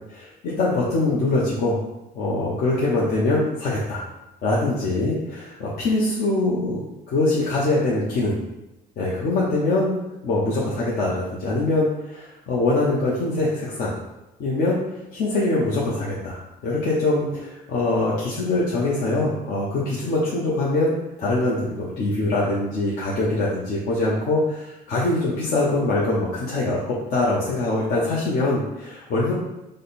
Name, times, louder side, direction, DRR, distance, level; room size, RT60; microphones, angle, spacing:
voice 1, 0.1-1.8 2.1-4.0 4.4-6.8 7.1-8.4 9.0-9.9 10.2-13.9 14.4-14.8 15.1-29.3, left 2 dB, 65° left, -6 dB, 0.9 m, -23 dB
5.0 x 2.2 x 4.1 m, 0.95 s
cardioid pair, 110°, 17 cm